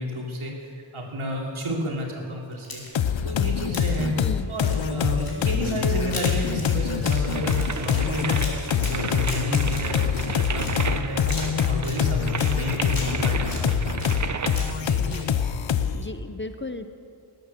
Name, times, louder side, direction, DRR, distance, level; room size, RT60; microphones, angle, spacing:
voice 1, 0.0-2.8 3.2-4.1 4.5-11.2 11.6-14.2 14.8-15.1, equal, 75° right, -2 dB, 3.2 m, -31 dB
sound 1, 2.5-3.1 3.7-4.0 4.6-10.9 11.2-12.5 12.9-13.6 14.0-14.8 15.1-15.2, left 2 dB, 45° left, 3.8 m, -38 dB
sound 2, 2.9-16.1, left 8 dB, 65° left, 0.8 m, -25 dB
voice 2, 4.2-4.5 15.0-15.4 15.9-16.9, left 3 dB, 25° left, 9 dB, 0.8 m, -35 dB
sound 3, 7.0-14.7, right 5 dB, 35° right, 0.8 m, -33 dB
19.0 x 9.5 x 6.8 m, 2.4 s
wide cardioid pair, 80°, 50 cm